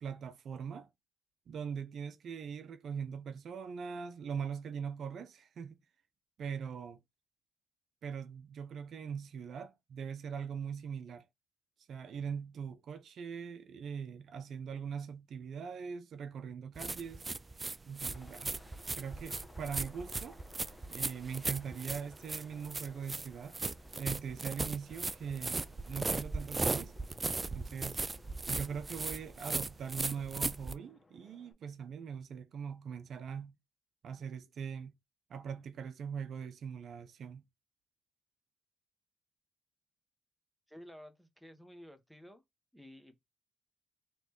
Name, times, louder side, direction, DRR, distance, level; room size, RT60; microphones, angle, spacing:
voice 1, 0.0-0.9 1.5-5.8 6.4-7.0 8.0-11.2 11.9-17.2 17.8-18.5 19.0-20.4 20.9-23.6 24.0-25.6 25.9-26.9 27.5-28.0 28.4-33.6 34.0-34.9 35.3-37.4, right 7 dB, 65° right, 0.7 m, -41 dB
sound 1, 16.8-30.8, right 3 dB, 25° right, 0.4 m, -38 dB
Aircraft, 18.1-31.5, left 3 dB, 30° left, 1.2 m, -61 dB
voice 2, 40.7-42.4 42.7-43.2, equal, ahead, 1.1 m, -53 dB
4.1 x 3.2 x 3.0 m
cardioid pair, 90°, 0 cm